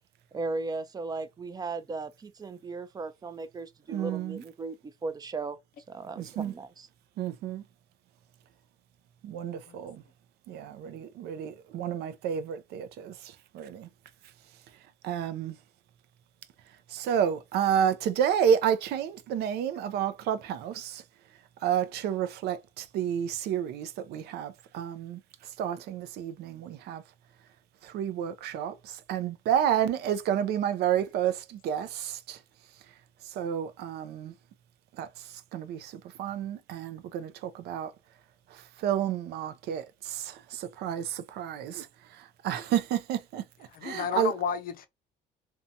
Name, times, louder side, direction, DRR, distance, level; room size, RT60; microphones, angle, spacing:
voice 1, 0.3-5.6 5.9-6.9, right 3 dB, 25° right, 0.4 m, -36 dB
voice 2, 3.9-4.4 6.2-6.5 7.2-7.6 9.2-10.0 10.5-13.9 15.0-15.6 16.9-21.0 21.6-27.0 27.8-32.4 33.2-34.3 34.9-37.9 38.5-43.4 43.8-44.3, right 9 dB, 75° right, 0.5 m, -30 dB
voice 3, 43.7-44.9, left 7 dB, 55° left, 0.5 m, -31 dB
2.6 x 2.3 x 2.7 m
cardioid pair, 110°, 17 cm